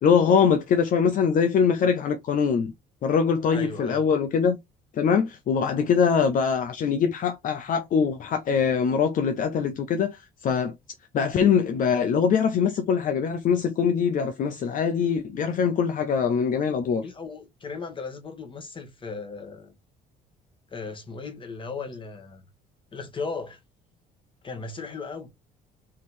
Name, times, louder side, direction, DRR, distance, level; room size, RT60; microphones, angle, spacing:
voice 1, 0.0-2.7 3.0-4.6 4.9-10.7 11.1-17.0, left 6 dB, 55° left, 0.7 m, -23 dB
voice 2, 3.5-4.0 17.0-19.7 20.7-22.4 22.9-23.6 24.4-25.3, left 4 dB, 30° left, 1.5 m, -36 dB
3.8 x 3.1 x 4.3 m
cardioid pair, 110°, 17 cm